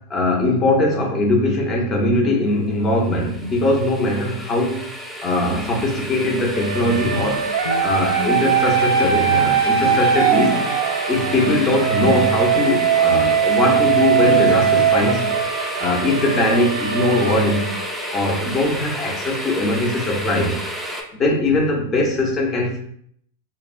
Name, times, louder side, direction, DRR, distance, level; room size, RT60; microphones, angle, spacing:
voice 1, 0.0-4.8 5.2-7.5 7.8-10.6 11.1-15.3 15.8-17.7 18.1-20.5 21.2-22.8, left 2 dB, 30° left, 0 dB, 0.7 m, -20 dB
sound 1, 2.9-21.0, equal, 5° right, 0.4 m, -31 dB
sound 2, 6.5-18.3, right 8 dB, 65° right, 0.4 m, -20 dB
sound 3, 6.8-7.9 8.2-8.6 9.0-9.6 9.8-10.0 10.4-10.8 11.2-15.6, left 5 dB, 80° left, 0.4 m, -30 dB
2.8 x 2.0 x 2.5 m, 0.66 s
hypercardioid pair, 100°, 0 cm